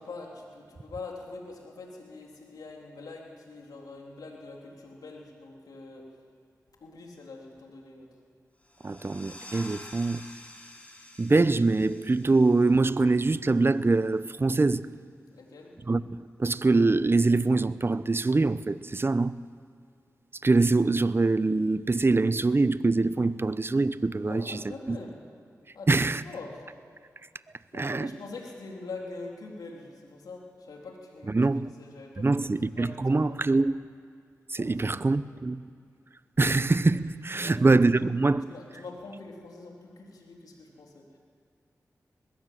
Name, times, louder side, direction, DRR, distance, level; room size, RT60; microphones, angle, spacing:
voice 1, 0.0-6.1 6.8-8.1 15.3-15.7 24.2-25.2 25.7-25.9 26.2-26.6 27.7-31.4 31.8-32.3 32.8-33.4 34.6-34.9 35.2-35.3 37.4-37.8 38.5-41.2, left 3 dB, 85° left, 3.6 m, -44 dB
sound 1, 8.6-14.0, left 1 dB, 20° left, 4.8 m, -49 dB
voice 2, 8.8-10.3 11.2-14.9 15.9-19.4 20.4-24.6 24.9-25.0 25.9-26.2 27.7-28.1 31.3-31.7 32.2-33.8 34.5-35.7 36.4-38.6, right 3 dB, 35° right, 0.8 m, -24 dB
21.0 x 17.5 x 7.7 m
cardioid pair, 40°, 6 cm